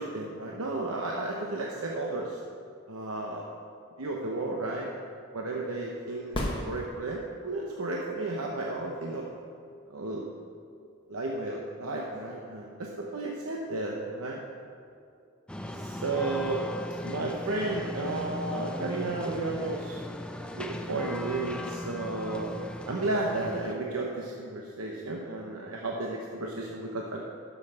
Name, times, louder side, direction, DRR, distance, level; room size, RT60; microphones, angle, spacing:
voice 1, 0.0-2.4 2.9-3.4 4.0-4.9 5.3-6.4 6.6-9.2 9.9-10.3 11.1-14.4 15.7-16.6 17.0-20.0 20.5-22.5 22.8-27.2, right 2 dB, 85° right, -1 dB, 0.9 m, -33 dB
sound 1, 6.3-7.5 11.3-11.4, left 1 dB, 25° left, 1.2 m, -33 dB
sound 2, 15.5-23.7, left 1 dB, 5° left, 0.4 m, -38 dB
11.5 x 5.7 x 5.6 m, 2.4 s
head